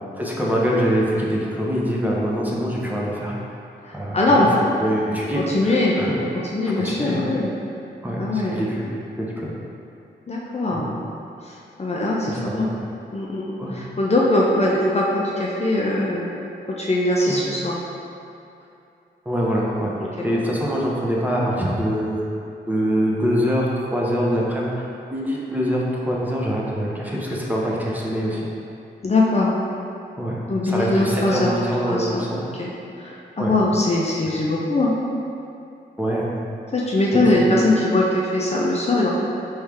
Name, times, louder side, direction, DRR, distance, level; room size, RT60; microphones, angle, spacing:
voice 1, 0.1-3.3 3.9-4.5 4.8-6.1 6.8-7.2 8.0-8.9 9.2-9.5 10.7-10.8 12.3-12.8 13.6-13.7 17.3-17.4 19.2-19.9 20.2-22.1 22.7-28.5 30.2-30.3 30.6-32.4 33.4-33.5 36.0-36.3 37.3-37.4, equal, 10° right, -5 dB, 0.9 m, -24 dB
voice 2, 3.8-4.5 5.3-6.0 6.5-7.5 8.2-8.6 10.3-10.9 11.4-12.7 13.1-16.3 16.7-17.8 20.2-20.3 29.0-29.5 30.5-31.5 31.9-32.2 32.6-32.7 33.0-34.9 36.7-39.2, left 2 dB, 35° left, -4 dB, 0.6 m, -21 dB
4.4 x 3.2 x 3.5 m, 2.6 s
cardioid pair, 60°, 19 cm